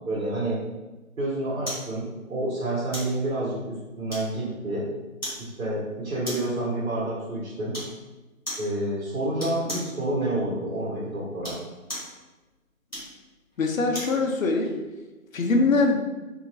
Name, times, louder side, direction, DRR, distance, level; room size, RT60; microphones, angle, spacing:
voice 1, 0.1-0.6 1.2-4.8 5.4-7.8 8.6-11.5, right 1 dB, 75° right, -7 dB, 1.2 m, -29 dB
sound 1, 1.6-1.9 2.9-3.2 4.1-4.5 5.2-5.4 6.2-6.6 7.7-8.0 8.4-8.7 9.4-9.9 11.3-12.1 12.9-14.2 14.6-14.8, equal, ahead, 1.1 m, -35 dB
voice 2, 13.6-14.7 15.3-16.0, left 3 dB, 70° left, 3 dB, 0.6 m, -22 dB
2.9 x 2.7 x 2.5 m, 1.1 s
figure-of-eight pair, 175°, 42 cm